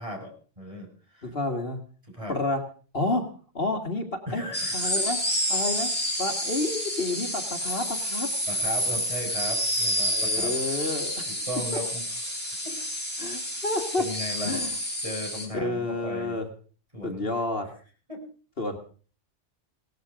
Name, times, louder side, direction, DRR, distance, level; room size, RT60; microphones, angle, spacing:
voice 1, 0.0-1.3 2.1-2.3 4.3-4.9 8.5-10.5 11.5-12.0 12.4-12.7 14.0-14.6 15.0-16.4 16.9-17.3 18.1-18.2, equal, 25° right, 1 dB, 6.0 m, -36 dB
voice 2, 1.2-1.8 2.3-2.6 2.9-3.2 3.5-4.4 4.7-5.2 5.5-5.9 6.2-8.3 10.1-11.3 13.2-14.0 14.4-14.7 15.5-16.5 17.0-17.7 18.6-18.8, left 2 dB, 50° left, 5 dB, 2.1 m, -29 dB
sound 1, 4.5-15.4, equal, 10° left, 5.7 m, -29 dB
18.0 x 14.5 x 5.0 m, 0.40 s
omnidirectional pair, 1.2 m